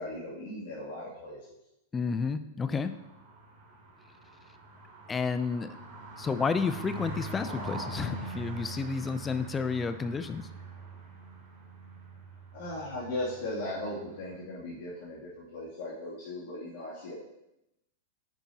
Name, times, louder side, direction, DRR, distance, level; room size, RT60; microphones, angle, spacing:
voice 1, 0.0-1.4 12.5-17.2, left 1 dB, 65° left, -9 dB, 2.7 m, -37 dB
voice 2, 1.9-2.9 5.1-5.7 6.2-10.5, left 5 dB, 20° left, 11 dB, 0.4 m, -31 dB
sound 1, 2.6-14.3, right 3 dB, 50° right, 2.8 m, -44 dB
9.1 x 5.3 x 2.9 m, 0.88 s
hypercardioid pair, 115°, 0 cm